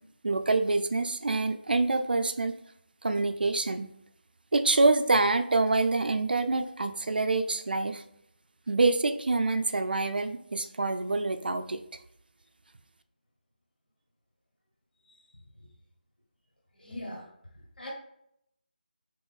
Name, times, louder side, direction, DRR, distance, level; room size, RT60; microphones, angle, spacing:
voice 1, 0.2-2.5 3.0-3.9 4.5-8.0 8.7-11.8, right 3 dB, 65° right, 8 dB, 0.4 m, -26 dB
voice 2, 16.7-17.3 17.8-17.9, left 1 dB, 70° left, -3 dB, 1.2 m, -41 dB
4.7 x 3.0 x 2.3 m, 0.74 s
figure-of-eight pair, 160°, 5 cm